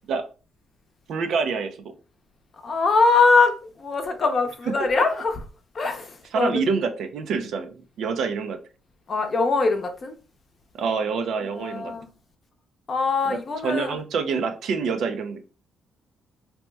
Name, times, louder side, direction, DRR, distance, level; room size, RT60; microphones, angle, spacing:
voice 1, 1.1-1.9 4.7-5.0 6.3-7.7 8.0-8.6 10.8-11.9 13.3-15.4, right 5 dB, 70° right, 0.5 m, -27 dB
voice 2, 2.6-5.4 5.7-6.6 9.1-10.1 11.6-12.1 12.9-14.0, left 4 dB, 40° left, 0.6 m, -22 dB
2.8 x 2.1 x 3.2 m
cardioid pair, 90°, 0 cm